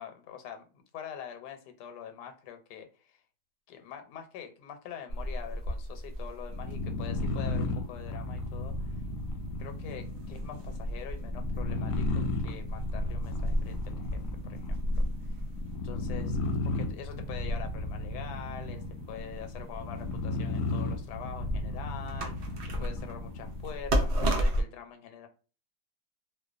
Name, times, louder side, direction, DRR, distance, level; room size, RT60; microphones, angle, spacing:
voice 1, 0.0-3.2 3.7-9.0 9.6-15.1 15.8-22.5 22.8-25.3, left 8 dB, 85° left, 6 dB, 1.2 m, -45 dB
sound 1, 5.1-24.6, equal, 70° right, 0.6 m, -35 dB
sound 2, 6.5-23.8, left 2 dB, 70° left, 0.8 m, -35 dB
2.7 x 2.1 x 2.4 m, 0.37 s
omnidirectional pair, 1.7 m